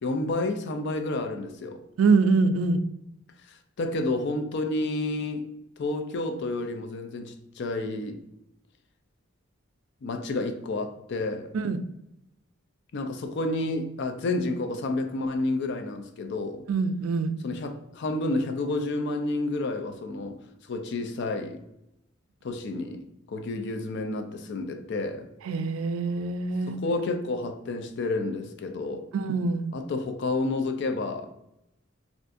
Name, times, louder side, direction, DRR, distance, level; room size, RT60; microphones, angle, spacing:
voice 1, 0.0-1.8 3.8-5.4 5.8-8.2 10.0-11.5 12.9-16.6 17.4-20.4 20.7-21.6 22.4-25.3 26.7-29.1 29.7-31.3, left 2 dB, 60° left, 0.4 m, -30 dB
voice 2, 2.0-2.8 11.5-11.8 16.7-17.4 25.4-26.8 29.1-29.7, right 4 dB, 80° right, 0.3 m, -24 dB
2.5 x 2.4 x 3.5 m
head